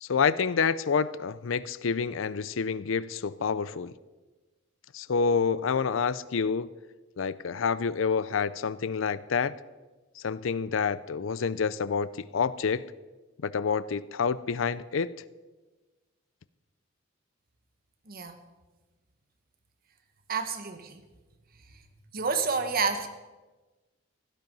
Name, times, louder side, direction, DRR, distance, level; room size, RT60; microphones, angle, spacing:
voice 1, 0.0-3.9 4.9-6.7 7.2-9.5 10.2-12.8 13.4-15.1, left 5 dB, 70° left, 18 dB, 0.5 m, -28 dB
voice 2, 18.1-18.4 20.3-21.0 22.1-23.1, right 5 dB, 45° right, 7 dB, 1.4 m, -29 dB
16.5 x 12.0 x 5.4 m, 1.2 s
head